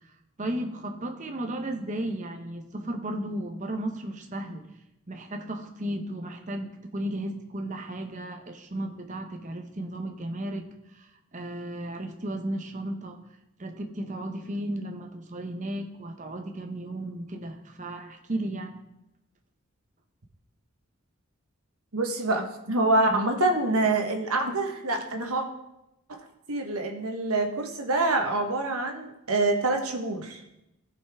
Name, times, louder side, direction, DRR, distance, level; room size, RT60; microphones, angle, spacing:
voice 1, 0.4-4.7 5.1-10.7 10.9-13.2 13.6-18.7, right 1 dB, 35° right, 4 dB, 0.9 m, -34 dB
voice 2, 21.9-25.4 26.1-26.2 26.5-30.4, right 2 dB, 85° right, 4 dB, 1.3 m, -26 dB
14.5 x 5.6 x 3.6 m, 0.89 s
head